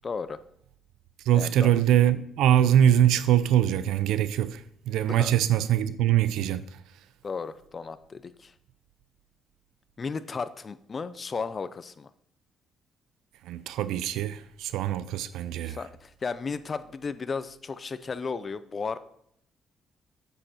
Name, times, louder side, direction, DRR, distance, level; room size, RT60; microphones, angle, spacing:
voice 1, 0.0-0.4 1.3-1.8 5.1-5.4 7.2-8.5 10.0-12.1 15.6-19.0, left 5 dB, 40° left, 0.7 m, -34 dB
voice 2, 1.3-6.6 13.5-15.8, right 11 dB, 90° right, 0.5 m, -23 dB
7.8 x 6.8 x 5.7 m
cardioid pair, 90°, 0 cm